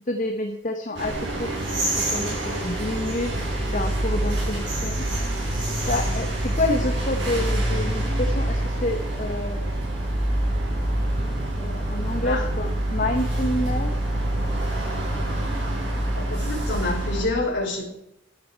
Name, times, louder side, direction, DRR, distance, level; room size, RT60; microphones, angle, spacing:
voice 1, 0.1-5.0 5.9-9.8 11.5-13.9, left 1 dB, 40° left, 4 dB, 1.1 m, -29 dB
sound 1, 0.9-17.2, right 1 dB, 65° right, 5.8 m, -26 dB
voice 2, 12.2-12.5 16.1-17.8, left 2 dB, 65° left, -6 dB, 3.7 m, -27 dB
11.5 x 11.0 x 4.6 m, 0.77 s
head